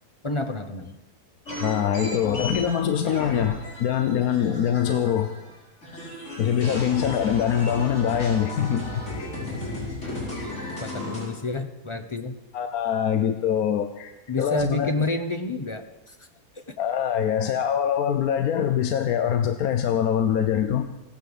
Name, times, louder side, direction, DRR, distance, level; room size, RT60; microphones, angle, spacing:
voice 1, 0.2-1.0 10.4-10.5 10.8-12.3 14.3-16.3 16.6-16.7, left 2 dB, 30° left, 7 dB, 0.6 m, -29 dB
sound 1, 1.5-5.5 5.8-11.2, left 2 dB, 50° left, 4.8 m, -34 dB
voice 2, 1.6-5.3 6.4-9.3 12.5-14.1 14.4-15.1 16.8-20.9, left 9 dB, 70° left, 8 dB, 1.2 m, -24 dB
16.5 x 10.0 x 7.0 m, 1.1 s
omnidirectional pair, 1.7 m